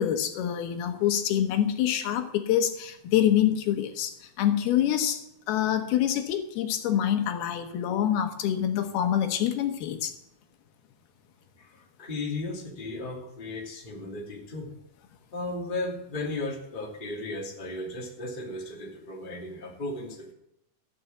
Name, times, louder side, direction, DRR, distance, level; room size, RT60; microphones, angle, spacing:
voice 1, 0.0-10.1, left 10 dB, 80° left, 7 dB, 3.0 m, -26 dB
voice 2, 11.6-14.7 15.3-20.3, left 2 dB, 15° left, 0 dB, 1.9 m, -35 dB
14.5 x 7.0 x 8.0 m, 0.82 s
omnidirectional pair, 4.5 m